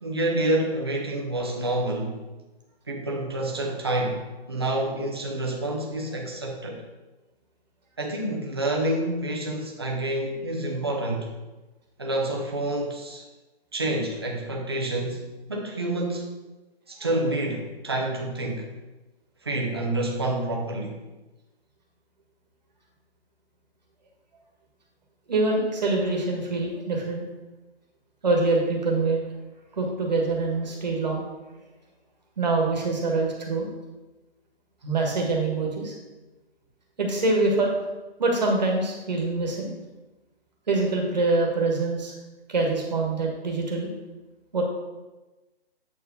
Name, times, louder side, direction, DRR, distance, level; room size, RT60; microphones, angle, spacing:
voice 1, 0.0-2.2 2.9-6.8 8.0-11.3 12.0-13.3 13.7-15.2 15.5-16.3 16.9-18.7 19.4-21.0, right 1 dB, 25° right, 0 dB, 0.7 m, -28 dB
voice 2, 25.3-27.2 28.2-29.2 29.8-31.2 32.4-33.7 34.8-35.9 37.0-37.7 38.2-39.7 40.7-42.1 42.5-43.9 44.5-44.6, right 3 dB, 45° right, 0 dB, 1.5 m, -24 dB
8.1 x 4.7 x 4.0 m, 1.1 s
hypercardioid pair, 175°, 31 cm